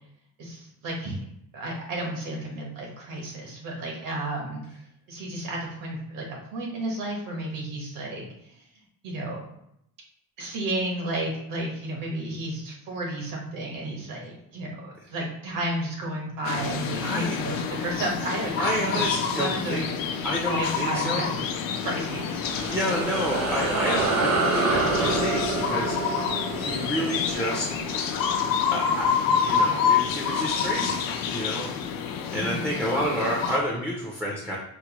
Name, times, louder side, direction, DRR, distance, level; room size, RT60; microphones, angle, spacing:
voice 1, 0.4-1.2 1.5-4.6 5.1-8.7 9.0-9.4 10.4-19.1 19.3-19.9 20.4-22.4 32.3-32.6, right 1 dB, 70° right, -1 dB, 1.2 m, -32 dB
sound 1, 16.4-33.6, left 6 dB, 85° left, 0.5 m, -28 dB
voice 2, 17.0-17.4 18.6-19.8 20.2-21.3 22.0-22.1 22.7-27.7 28.7-29.1 29.4-31.7 32.3-34.6, equal, 5° right, -3 dB, 0.4 m, -30 dB
sound 2, 22.2-29.0, right 3 dB, 50° right, 0.6 m, -28 dB
4.6 x 2.0 x 2.9 m, 0.75 s
cardioid pair, 170°, 34 cm